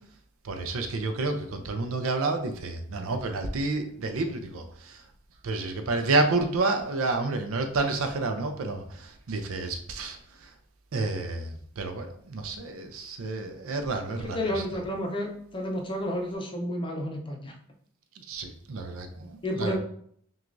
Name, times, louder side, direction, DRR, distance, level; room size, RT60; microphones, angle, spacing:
voice 1, 0.4-5.0 5.4-10.5 10.9-14.6 18.2-19.8, right 3 dB, 70° right, 6 dB, 0.5 m, -30 dB
voice 2, 14.2-17.5 19.4-19.8, equal, 25° left, 2 dB, 0.6 m, -31 dB
6.0 x 2.4 x 2.6 m, 0.64 s
head